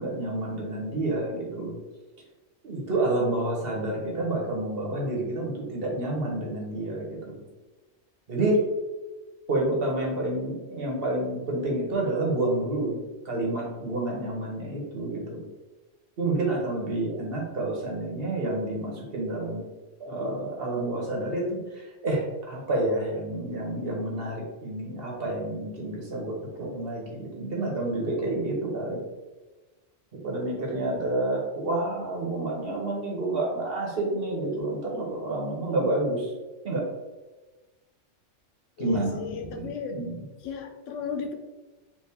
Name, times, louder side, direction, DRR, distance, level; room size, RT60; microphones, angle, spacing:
voice 1, 0.0-1.8 2.6-7.4 8.3-8.6 9.5-15.5 16.2-19.6 20.0-29.0 30.2-36.3 36.6-36.9 38.8-40.2, right 2 dB, 55° right, -1 dB, 1.2 m, -29 dB
voice 2, 38.8-40.0 40.4-41.3, left 6 dB, 90° left, 5 dB, 1.0 m, -35 dB
4.2 x 2.7 x 3.5 m, 1.2 s
omnidirectional pair, 1.2 m